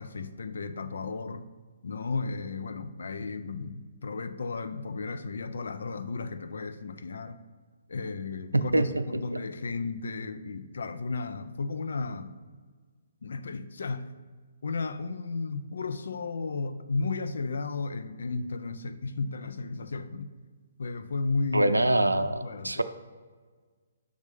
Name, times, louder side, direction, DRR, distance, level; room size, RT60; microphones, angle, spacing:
voice 1, 0.0-1.5 1.8-7.4 7.9-12.4 13.2-14.1 14.6-20.3 20.8-21.7 22.1-22.8, left 4 dB, 65° left, 0.4 m, -34 dB
voice 2, 8.5-9.4 21.5-22.8, right 1 dB, 85° right, 0.4 m, -25 dB
6.4 x 3.5 x 5.0 m
figure-of-eight pair, 130°, 0 cm